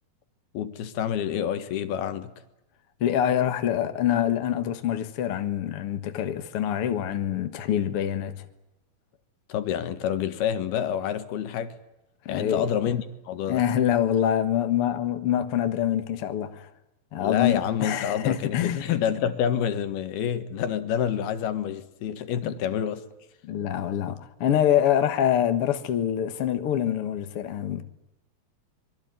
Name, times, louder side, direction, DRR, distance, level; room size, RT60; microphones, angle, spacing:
voice 1, 0.6-2.3 9.5-11.8 12.3-13.6 17.2-23.0, left 9 dB, 75° left, 3.4 m, -28 dB
voice 2, 3.0-8.4 12.3-12.7 13.5-16.7 17.1-18.8 22.4-22.5 23.4-27.8, left 10 dB, 55° left, 1.6 m, -25 dB
25.0 x 22.5 x 9.3 m
omnidirectional pair, 4.6 m